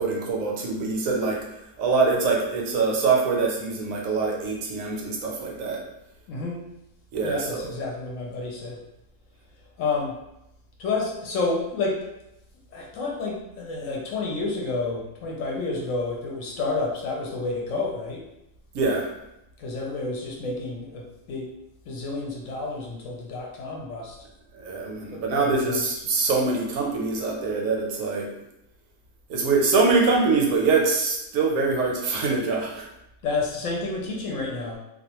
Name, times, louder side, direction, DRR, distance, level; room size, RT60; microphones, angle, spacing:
voice 1, 0.0-1.4 1.8-5.8 7.1-7.7 18.7-19.1 24.6-28.3 29.3-32.9, right 4 dB, 75° right, -1 dB, 1.0 m, -24 dB
voice 2, 6.3-6.6 7.2-8.8 9.8-10.1 10.8-12.0 12.7-18.2 19.6-21.5 21.9-24.2 25.1-25.8 33.2-34.8, left 3 dB, 70° left, -1 dB, 0.9 m, -30 dB
2.3 x 2.1 x 2.8 m, 0.86 s
omnidirectional pair, 1.5 m